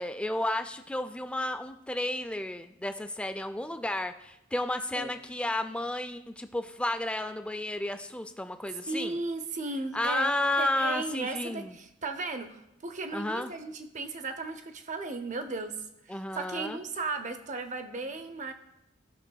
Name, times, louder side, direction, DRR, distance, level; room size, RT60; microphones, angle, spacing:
voice 1, 0.0-9.2 9.9-11.8 13.1-13.5 16.1-16.8, left 1 dB, 5° left, 8 dB, 0.3 m, -32 dB
voice 2, 8.9-18.5, right 3 dB, 40° right, 9 dB, 0.7 m, -36 dB
16.5 x 5.8 x 2.3 m, 0.87 s
head